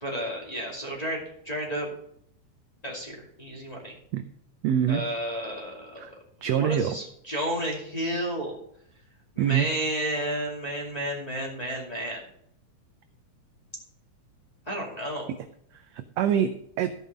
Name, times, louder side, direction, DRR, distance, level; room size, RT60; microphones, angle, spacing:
voice 1, 0.0-1.9 2.8-4.0 4.9-6.1 6.4-8.6 9.4-12.2 14.7-15.3, equal, 15° left, -3 dB, 2.1 m, -32 dB
voice 2, 4.6-5.0 6.0-6.1 6.4-7.0 9.4-9.7 15.3-15.4 15.7-16.9, right 9 dB, 75° right, 9 dB, 1.5 m, -25 dB
14.0 x 5.5 x 5.1 m, 0.70 s
omnidirectional pair, 3.6 m